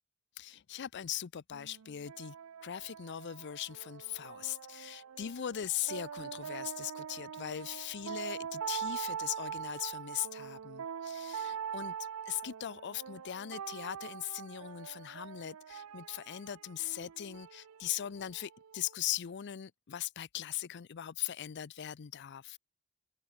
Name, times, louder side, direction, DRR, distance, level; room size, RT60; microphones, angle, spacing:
voice 1, 0.4-2.4 2.6-11.9 12.3-22.6, left 11 dB, 50° left, 0.5 m, -40 dB
sound 1, 1.5-19.0, right 7 dB, 70° right, 0.5 m, -43 dB
open air
head